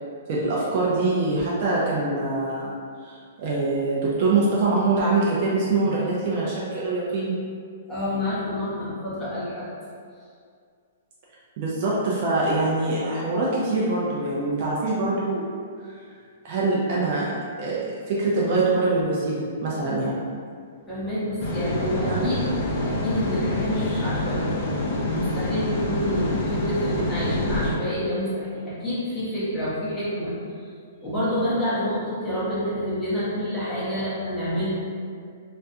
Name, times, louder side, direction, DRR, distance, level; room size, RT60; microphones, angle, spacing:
voice 1, 0.3-2.8 3.0-7.3 11.6-15.5 16.4-17.8 18.1-20.2 22.1-22.3, right 3 dB, 45° right, -6 dB, 0.4 m, -24 dB
voice 2, 7.9-9.7 20.9-22.5 22.7-24.6 25.1-30.3 30.9-34.8, equal, 5° left, -13 dB, 0.8 m, -28 dB
sound 1, 21.4-27.7, left 1 dB, 40° left, 0.5 m, -27 dB
2.3 x 2.1 x 2.7 m, 2.2 s
hypercardioid pair, 160°, 0 cm